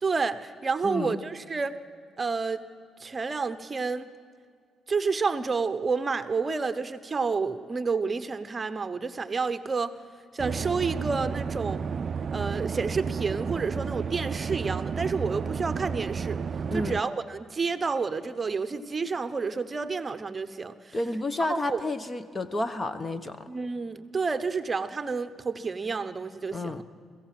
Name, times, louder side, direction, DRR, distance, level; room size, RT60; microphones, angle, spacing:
voice 1, 0.0-1.7 2.2-2.6 3.0-4.1 4.9-9.9 10.3-11.9 12.3-16.4 16.7-21.0 21.5-21.8 23.5-26.8, right 4 dB, 30° right, 10 dB, 0.9 m, -29 dB
voice 2, 0.8-1.2 16.7-17.0 20.9-23.5 26.5-26.8, left 2 dB, 25° left, 11 dB, 1.1 m, -31 dB
sound 1, 10.4-17.0, right 6 dB, 45° right, 0.4 m, -32 dB
23.5 x 15.5 x 7.6 m, 2.1 s
cardioid pair, 90°, 0 cm